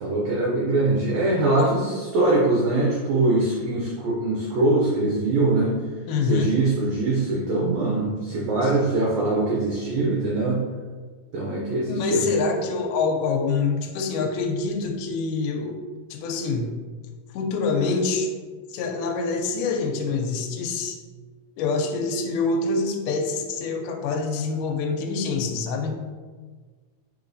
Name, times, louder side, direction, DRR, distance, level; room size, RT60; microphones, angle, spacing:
voice 1, 0.0-5.8 6.3-10.6 11.3-12.4, right 2 dB, 80° right, -3 dB, 1.6 m, -22 dB
voice 2, 6.1-6.6 8.6-8.8 9.9-10.1 11.9-15.8 16.1-16.7 17.3-18.3 18.7-21.0 21.6-26.0, left 4 dB, 80° left, 3 dB, 2.0 m, -26 dB
5.0 x 3.9 x 2.6 m, 1.5 s
omnidirectional pair, 3.8 m